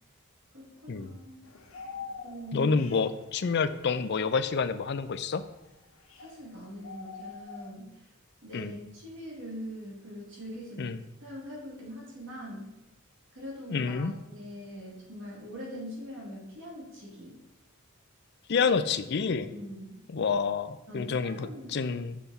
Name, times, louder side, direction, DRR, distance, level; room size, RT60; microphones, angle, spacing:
voice 1, 0.5-1.4 2.2-2.8 6.2-8.1 8.4-10.9 11.2-12.8 13.3-17.4 19.5-20.0 20.9-21.8, equal, 60° right, -4 dB, 2.4 m, -42 dB
sound 1, 1.4-6.5 6.8-7.7, left 5 dB, 65° left, 1.0 m, -45 dB
voice 2, 2.5-5.4 8.5-8.8 10.8-11.0 13.7-14.1 18.5-19.5 20.1-22.2, left 5 dB, 50° left, 12 dB, 0.4 m, -28 dB
7.3 x 5.7 x 4.1 m, 0.98 s
head